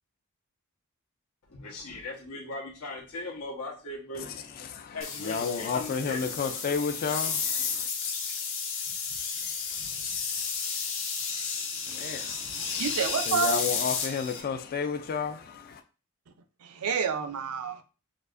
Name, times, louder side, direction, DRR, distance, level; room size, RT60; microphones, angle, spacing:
voice 1, 1.5-4.4 4.9-6.8 7.2-7.3 9.0-9.9 12.3-12.5, left 2 dB, 90° left, 1.1 m, -40 dB
sound 1, 5.0-14.4, left 5 dB, 60° left, 0.7 m, -32 dB
voice 2, 5.2-7.7 11.9-12.4 13.3-15.8, left 6 dB, 40° left, 0.3 m, -31 dB
voice 3, 12.6-13.7 16.6-17.8, right 6 dB, 80° right, 0.5 m, -29 dB
4.5 x 2.4 x 2.5 m
head